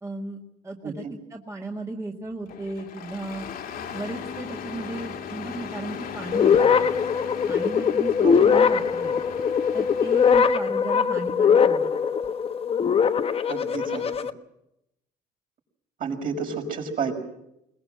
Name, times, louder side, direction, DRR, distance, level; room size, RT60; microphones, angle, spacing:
voice 1, 0.0-3.5 3.9-6.9 7.5-9.2 9.7-11.9, right 2 dB, 15° right, 1 dB, 1.8 m, -36 dB
voice 2, 0.8-1.1 8.2-8.4 13.5-14.1 16.0-17.1, right 5 dB, 55° right, 1 dB, 5.7 m, -30 dB
Engine starting, 2.5-10.6, left 7 dB, 65° left, 2.2 m, -37 dB
sound 1, 6.3-14.3, left 6 dB, 35° left, 1.0 m, -21 dB
21.5 x 20.5 x 7.6 m, 0.83 s
cardioid pair, 110°, 17 cm